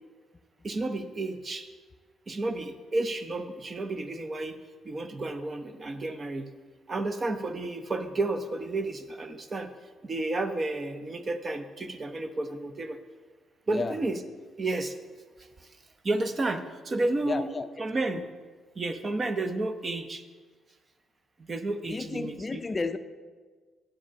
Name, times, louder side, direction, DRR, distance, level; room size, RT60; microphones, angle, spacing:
voice 1, 0.6-1.7 2.3-4.6 4.8-6.5 6.9-9.7 10.0-13.0 13.7-14.2 14.6-15.0 15.6-15.7 16.0-17.5 17.8-18.2 18.8-20.2 21.5-22.6, right 2 dB, 35° right, 9 dB, 0.7 m, -31 dB
voice 2, 13.7-14.0 17.2-17.7 21.9-23.0, left 4 dB, 30° left, 9 dB, 0.4 m, -32 dB
8.5 x 5.0 x 6.2 m, 1.5 s
cardioid pair, 90°, 0 cm